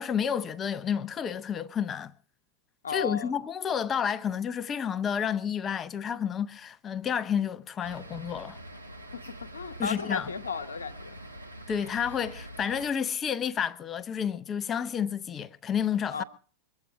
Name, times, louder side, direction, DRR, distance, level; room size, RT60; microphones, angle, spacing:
voice 1, 0.0-2.1 2.9-8.6 9.8-10.3 11.7-16.2, left 8 dB, 25° left, 0.8 m, -30 dB
voice 2, 2.8-3.3 9.1-11.2 16.1-16.2, left 5 dB, 70° left, 1.2 m, -35 dB
sound 1, 7.8-12.9, right 1 dB, 90° right, 2.0 m, -45 dB
23.5 x 8.5 x 6.0 m
figure-of-eight pair, 90°, 0 cm